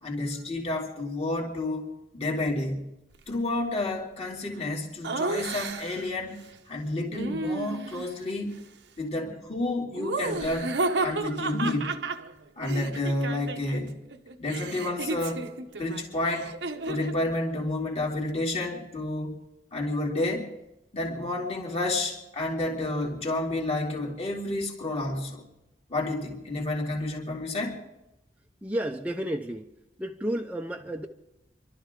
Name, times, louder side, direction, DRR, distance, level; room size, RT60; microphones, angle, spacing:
voice 1, 0.0-2.9 3.3-6.4 6.7-8.6 9.0-12.0 12.6-14.0 14.4-15.5 15.8-16.5 16.9-19.3 19.7-20.5 20.9-25.4 25.9-27.8, left 2 dB, 35° left, 2.8 m, -30 dB
Laughter, 5.0-6.1 7.1-8.1 9.9-13.8 14.1-17.2, right 3 dB, 70° right, 1.0 m, -32 dB
voice 2, 28.6-29.7 30.0-31.1, right 1 dB, 10° right, 0.7 m, -31 dB
28.0 x 12.5 x 3.8 m
head